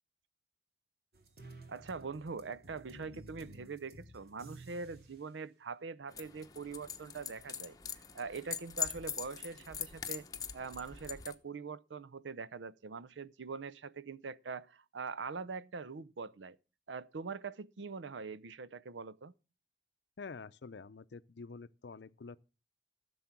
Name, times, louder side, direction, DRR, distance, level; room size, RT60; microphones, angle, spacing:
sound 1, 1.1-5.2, right 1 dB, 60° right, 2.5 m, -54 dB
voice 1, 1.7-7.8 8.1-10.3 10.5-16.6 16.9-19.3, right 4 dB, 85° right, 0.6 m, -43 dB
sound 2, 6.1-11.3, left 7 dB, 20° left, 1.0 m, -42 dB
voice 2, 20.2-22.4, left 4 dB, 65° left, 0.5 m, -48 dB
15.0 x 7.1 x 5.9 m
head